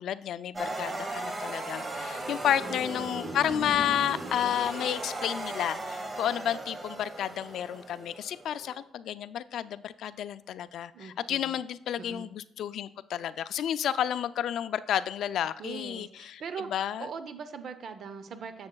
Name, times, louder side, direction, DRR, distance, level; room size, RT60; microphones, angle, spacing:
voice 1, 0.0-16.4 16.7-17.1, left 10 dB, 75° left, 14 dB, 0.3 m, -31 dB
sound 1, 0.5-8.7, right 2 dB, 30° right, 1.1 m, -37 dB
voice 2, 2.4-2.8 10.9-11.6 12.0-12.3 15.6-16.7 17.0-18.7, right 6 dB, 60° right, 10 dB, 0.6 m, -41 dB
9.5 x 7.1 x 2.3 m, 0.73 s
cardioid pair, 90°, 0 cm